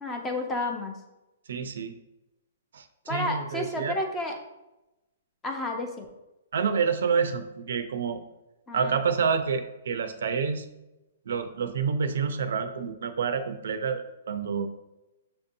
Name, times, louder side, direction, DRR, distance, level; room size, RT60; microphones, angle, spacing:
voice 1, 0.0-1.0 3.1-4.3 5.4-6.1 8.7-9.0, left 2 dB, 10° left, 2 dB, 0.5 m, -31 dB
voice 2, 1.5-1.9 2.7-4.0 6.5-8.2 8.7-10.7 11.3-14.7, right 6 dB, 70° right, 9 dB, 0.4 m, -28 dB
6.7 x 2.6 x 2.6 m, 0.97 s
hypercardioid pair, 160°, 0 cm